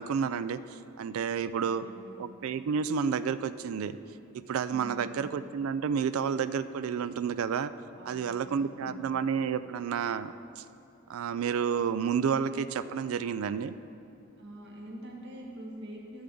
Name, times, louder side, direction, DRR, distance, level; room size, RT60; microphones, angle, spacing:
voice 1, 0.0-1.9 2.2-4.0 4.3-7.7 8.1-10.6 11.1-13.7, right 6 dB, 85° right, 13 dB, 0.3 m, -30 dB
voice 2, 1.5-2.2 4.7-5.3 7.9-9.0 14.4-16.2, right 1 dB, 60° right, -2 dB, 1.7 m, -45 dB
13.5 x 7.1 x 3.8 m, 2.7 s
head